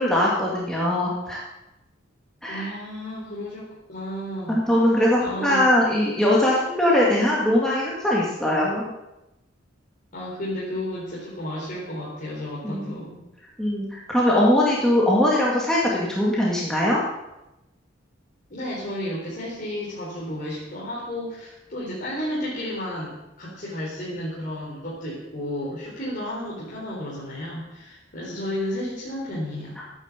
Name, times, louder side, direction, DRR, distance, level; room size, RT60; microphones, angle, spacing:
voice 1, 0.0-1.4 2.4-2.7 4.5-8.9 12.6-12.9 13.6-17.0, left 1 dB, 5° left, -5 dB, 2.2 m, -21 dB
voice 2, 2.5-4.6 5.2-5.7 10.1-13.2 18.5-29.8, left 1 dB, 45° left, -7 dB, 4.1 m, -32 dB
13.0 x 9.6 x 7.4 m, 0.94 s
head